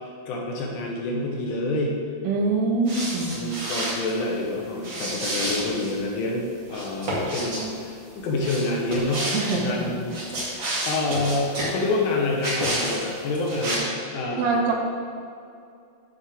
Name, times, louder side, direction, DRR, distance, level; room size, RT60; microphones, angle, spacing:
voice 1, 0.3-2.0 3.3-14.6, left 2 dB, 75° left, -1 dB, 3.4 m, -27 dB
voice 2, 2.2-3.4 9.3-10.0 14.4-14.7, right 3 dB, 75° right, -2 dB, 2.1 m, -24 dB
sound 1, 2.9-4.1 4.8-5.9 6.7-7.6 8.4-9.6 10.0-11.8 12.4-13.0 13.3-13.8, right 1 dB, 45° right, 1.6 m, -29 dB
10.0 x 7.2 x 3.7 m, 2.4 s
omnidirectional pair, 5.9 m